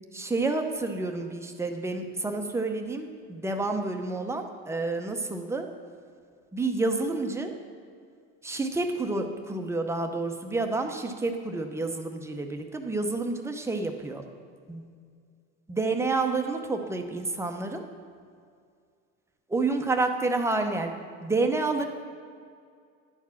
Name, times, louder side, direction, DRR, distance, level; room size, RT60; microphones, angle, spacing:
voice 1, 0.1-5.7 6.5-7.5 8.4-14.2 14.7-14.8 15.7-17.8 19.5-20.9 21.2-21.9, right 3 dB, 10° right, 4 dB, 0.7 m, -29 dB
10.5 x 4.6 x 7.2 m, 2.2 s
supercardioid pair, 120°, 35 cm